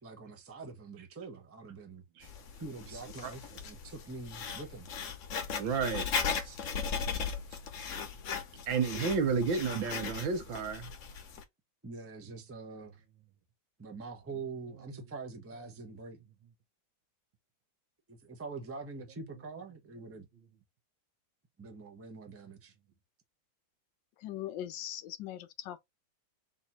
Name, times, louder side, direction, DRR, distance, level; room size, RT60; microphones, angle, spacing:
voice 1, 0.0-2.3 2.6-4.9 11.8-13.0 13.8-16.2 18.1-20.3 21.6-22.7, right 4 dB, 20° right, 0.4 m, -45 dB
Writing, 2.2-11.4, left 6 dB, 55° left, 1.0 m, -38 dB
voice 2, 5.6-6.1 6.4-6.6 7.1-7.2 8.7-10.9, right 5 dB, 80° right, 1.7 m, -31 dB
voice 3, 24.2-25.8, left 12 dB, 75° left, 1.3 m, -40 dB
4.1 x 2.6 x 4.2 m
omnidirectional pair, 2.1 m